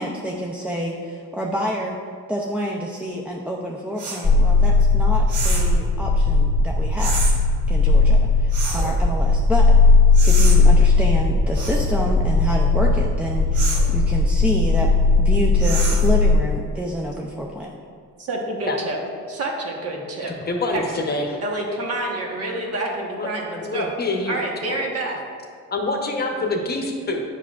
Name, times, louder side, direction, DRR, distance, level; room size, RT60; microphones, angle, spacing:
voice 1, 0.0-2.0 2.3-7.2 7.7-9.7 10.2-14.9 15.2-17.7, equal, 5° right, -2 dB, 0.4 m, -28 dB
sound 1, 4.0-4.2 5.3-5.7 7.0-7.3 8.5-8.9 10.1-10.6 11.5-11.9 13.5-13.9 15.6-16.1, right 3 dB, 75° right, 1.3 m, -28 dB
sound 2, 4.2-16.4, left 3 dB, 10° left, 1.0 m, -17 dB
voice 2, 18.2-19.0 19.3-20.3 20.7-23.9 24.3-25.2, right 2 dB, 50° right, 0 dB, 1.2 m, -28 dB
voice 3, 20.3-21.4 23.2-24.3 24.6-24.8 25.7-27.2, left 2 dB, 30° left, 2 dB, 0.9 m, -26 dB
8.0 x 5.7 x 2.4 m, 2.1 s
cardioid pair, 100°, 31 cm